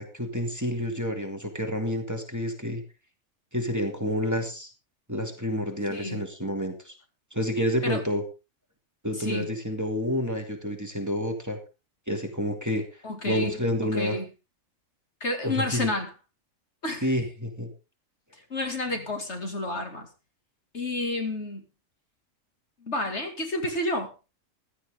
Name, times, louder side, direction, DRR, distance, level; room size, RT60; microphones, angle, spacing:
voice 1, 0.0-2.8 3.5-4.7 5.1-7.0 7.3-8.2 9.0-11.6 12.1-14.2 15.4-15.9 17.0-17.7, equal, 10° right, 4 dB, 2.5 m, -29 dB
voice 2, 5.9-6.2 7.8-8.0 9.2-9.5 13.0-13.5 14.0-14.3 15.2-16.1 16.8-17.1 18.3-20.1 20.7-21.6 22.8-24.1, left 2 dB, 55° left, 5 dB, 2.6 m, -30 dB
16.0 x 12.0 x 3.7 m, 0.30 s
omnidirectional pair, 1.4 m